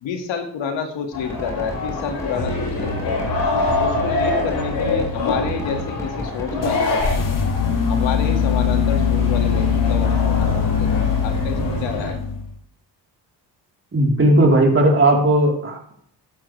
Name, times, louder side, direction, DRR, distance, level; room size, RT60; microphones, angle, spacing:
voice 1, 0.0-3.3 3.8-7.4 7.9-12.2, left 7 dB, 85° left, 4 dB, 2.3 m, -29 dB
sound 1, 1.1-12.1, left 2 dB, 70° left, 6.2 m, -26 dB
sound 2, 1.3-6.9, equal, 5° left, 3.2 m, -33 dB
sound 3, 6.6-12.5, left 6 dB, 45° left, 2.1 m, -21 dB
voice 2, 13.9-16.0, right 1 dB, 30° right, 0 dB, 4.1 m, -16 dB
14.5 x 11.0 x 3.4 m, 0.65 s
cardioid pair, 90°, 44 cm